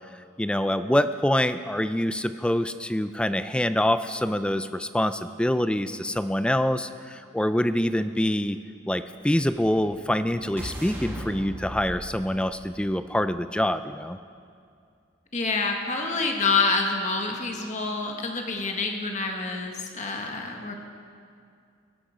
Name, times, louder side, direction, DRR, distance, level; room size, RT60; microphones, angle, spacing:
voice 1, 0.4-8.6 8.9-14.2, left 1 dB, 5° left, 11 dB, 0.3 m, -25 dB
sound 1, 9.6-13.6, equal, 10° right, 1.6 m, -40 dB
voice 2, 15.3-20.8, left 4 dB, 35° left, 3 dB, 1.5 m, -27 dB
21.0 x 11.5 x 5.0 m, 2.3 s
head